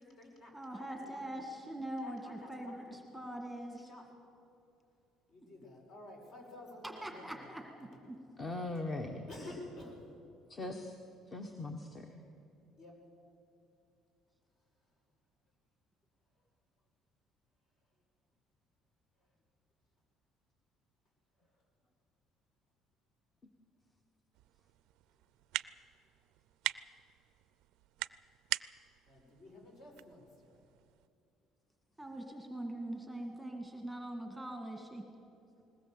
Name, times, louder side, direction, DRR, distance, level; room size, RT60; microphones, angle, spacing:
voice 1, 0.0-1.4 2.0-3.0 3.9-4.0 5.3-7.4 7.8-8.0 9.3-10.1 12.8-13.0 29.1-30.6, left 2 dB, 50° left, 1 dB, 5.5 m, -52 dB
voice 2, 0.5-3.9 6.8-7.6 8.0-8.2 32.0-35.0, right 1 dB, ahead, 2 dB, 1.9 m, -42 dB
voice 3, 8.4-9.5 10.5-10.9 11.3-12.1, left 2 dB, 25° left, 4 dB, 1.4 m, -40 dB
sound 1, 24.3-31.1, right 17 dB, 80° right, 0.4 m, -43 dB
20.5 x 19.0 x 7.7 m, 2.7 s
cardioid pair, 135°, 0 cm